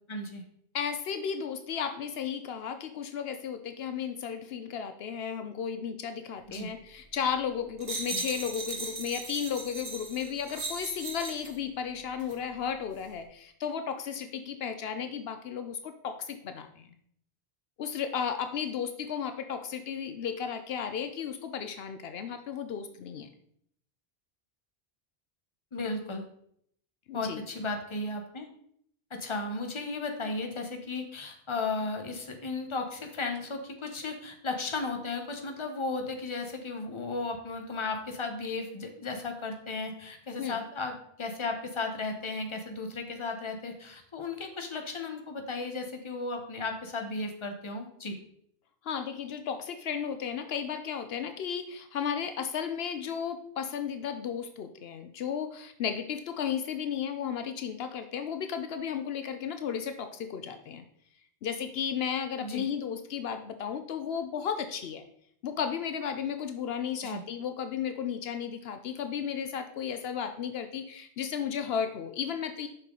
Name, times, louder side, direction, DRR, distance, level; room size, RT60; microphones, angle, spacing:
voice 1, 0.1-0.4 6.5-6.7 8.1-8.2 25.7-26.2 27.1-28.5 29.1-48.2 62.4-62.6 67.0-67.2, left 3 dB, 30° left, 4 dB, 0.9 m, -35 dB
voice 2, 0.7-16.9 17.8-23.3 27.1-27.4 40.4-40.6 48.8-60.8 61.4-65.1 65.4-72.7, left 7 dB, 75° left, 8 dB, 0.8 m, -34 dB
sound 1, 7.8-11.6 12.2-12.4, right 3 dB, 35° right, 1.0 m, -38 dB
6.5 x 5.8 x 3.7 m, 0.67 s
omnidirectional pair, 1.0 m